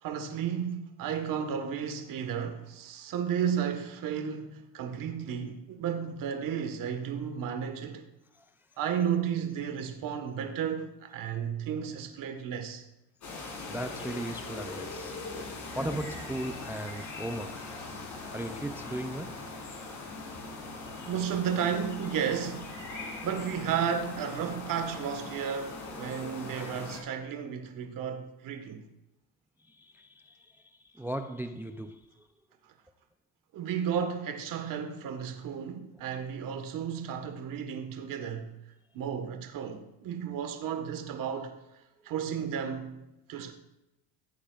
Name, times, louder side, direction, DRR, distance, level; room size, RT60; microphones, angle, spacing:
voice 1, 0.0-8.1 8.8-12.8 21.0-22.7 23.2-28.8 33.5-38.5 38.9-41.5 42.0-43.0 43.3-43.5, right 8 dB, 50° right, 1.4 m, -33 dB
sound 1, 13.2-27.0, left 3 dB, 45° left, 4.2 m, -41 dB
voice 2, 13.7-15.2 15.7-17.7 18.1-19.4 20.6-21.1 26.6-26.9 29.6-32.3, right 1 dB, 5° right, 0.3 m, -38 dB
15.5 x 8.5 x 2.4 m
supercardioid pair, 105°, 42 cm